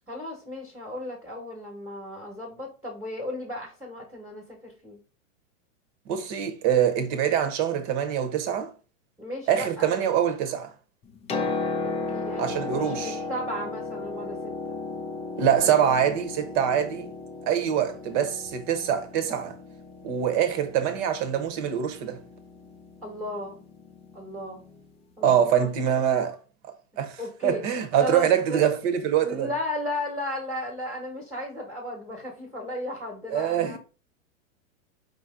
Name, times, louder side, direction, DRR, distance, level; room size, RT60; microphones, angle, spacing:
voice 1, 0.1-5.0 9.2-10.0 11.8-14.8 23.0-23.6 24.1-24.6 25.2-25.7 27.2-27.6 28.0-28.6 29.2-33.8, left 1 dB, 5° right, 1.3 m, -35 dB
voice 2, 6.1-8.7 9.5-10.7 12.4-13.2 15.4-17.1 17.5-19.6 20.0-22.2 25.2-26.4 27.0-29.5 33.3-33.8, right 9 dB, 40° right, 1.0 m, -24 dB
Piano, 11.0-24.8 25.9-26.0, left 3 dB, 15° left, 0.6 m, -35 dB
5.3 x 2.8 x 3.6 m
hypercardioid pair, 135°, 40 cm